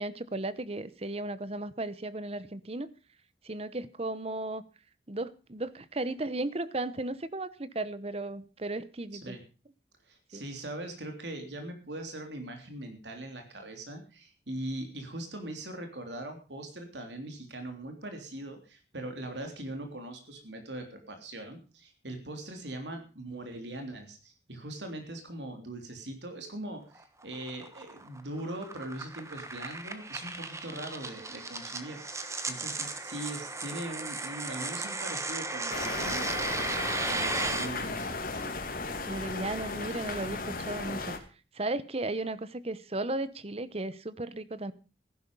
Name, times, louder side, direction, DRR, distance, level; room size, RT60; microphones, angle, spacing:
voice 1, 0.0-2.9 3.4-4.6 5.1-9.4 10.3-10.4 39.1-41.2 41.5-44.7, right 2 dB, 35° right, 0.9 m, -35 dB
voice 2, 10.1-36.6 37.1-38.3, right 1 dB, 80° right, 3.3 m, -41 dB
sound 1, 26.9-37.7, right 3 dB, 15° right, 1.2 m, -35 dB
sound 2, 35.7-41.2, left 3 dB, 50° left, 2.3 m, -35 dB
15.0 x 11.5 x 5.4 m
head